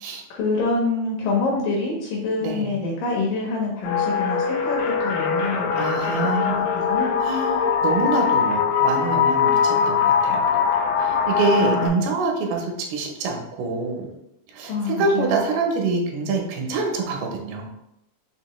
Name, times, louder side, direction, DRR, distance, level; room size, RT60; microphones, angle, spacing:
voice 1, 0.3-7.1 9.7-10.1 11.5-12.1 14.7-15.5, left 3 dB, 75° left, -2 dB, 2.2 m, -26 dB
voice 2, 2.4-2.7 5.8-6.6 7.2-10.5 11.0-14.1 14.5-17.7, right 3 dB, 80° right, 1 dB, 2.7 m, -25 dB
sound 1, 3.8-11.9, left 6 dB, 90° left, 1.8 m, -21 dB
6.4 x 2.5 x 3.0 m, 0.84 s
omnidirectional pair, 4.6 m